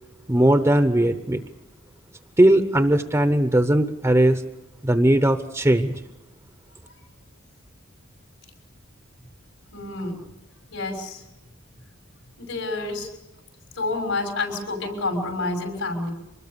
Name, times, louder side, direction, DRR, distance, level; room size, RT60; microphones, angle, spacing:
voice 1, 0.3-1.4 2.4-4.4 4.8-6.0, right 1 dB, 15° right, 9 dB, 0.9 m, -19 dB
voice 2, 9.7-10.2 10.7-11.2 12.4-13.1 13.8-16.1, left 2 dB, 80° left, 4 dB, 6.4 m, -28 dB
25.5 x 20.5 x 6.8 m, 0.98 s
head